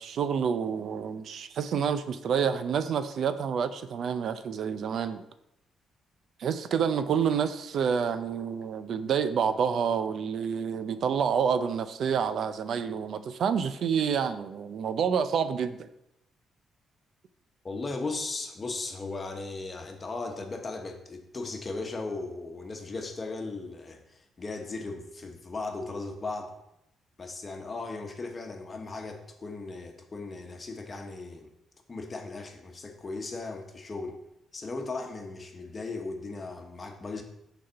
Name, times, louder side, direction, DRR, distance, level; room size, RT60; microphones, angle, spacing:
voice 1, 0.0-5.2 6.4-15.9, right 7 dB, 65° right, 11 dB, 0.5 m, -28 dB
voice 2, 17.6-26.5 27.2-31.5 31.9-34.2 34.5-37.2, left 3 dB, 30° left, 4 dB, 1.1 m, -37 dB
6.4 x 4.2 x 5.6 m, 0.83 s
cardioid pair, 90°, 0 cm